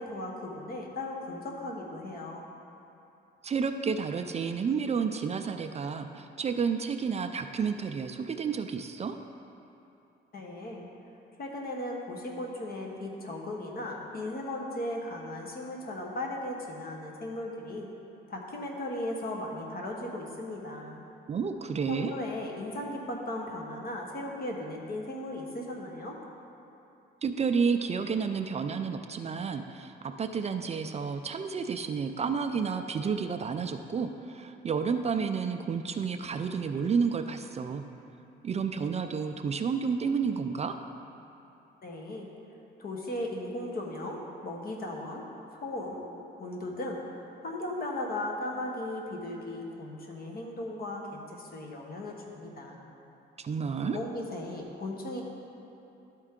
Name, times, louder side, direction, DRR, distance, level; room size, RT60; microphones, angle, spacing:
voice 1, 0.0-2.5 10.3-10.9 11.4-17.9 18.3-21.0 21.9-26.2 41.8-42.3 42.8-45.2 45.5-46.1 46.4-52.8 53.8-55.2, left 1 dB, 50° left, 0 dB, 1.3 m, -37 dB
voice 2, 3.4-9.1 21.3-22.1 27.2-37.9 38.4-40.8 53.4-54.0, right 5 dB, 35° right, 7 dB, 0.4 m, -31 dB
12.0 x 4.5 x 3.7 m, 2.8 s
cardioid pair, 90°, 20 cm